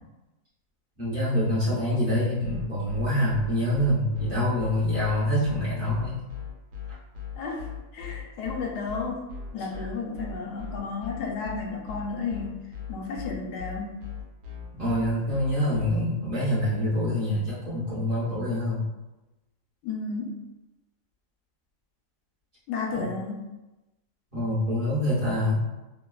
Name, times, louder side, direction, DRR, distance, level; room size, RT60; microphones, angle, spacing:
voice 1, 1.0-6.3 9.6-9.9 14.8-18.8 22.9-23.1 24.3-25.6, left 1 dB, 40° right, -11 dB, 1.1 m, -26 dB
sound 1, 2.4-15.9, left 6 dB, 85° right, 1.3 m, -38 dB
voice 2, 7.9-9.3 9.5-12.6 12.9-14.1 19.8-20.4 22.7-23.5, left 4 dB, 80° left, 0 dB, 1.1 m, -32 dB
3.1 x 2.2 x 2.2 m, 1.0 s
omnidirectional pair, 1.7 m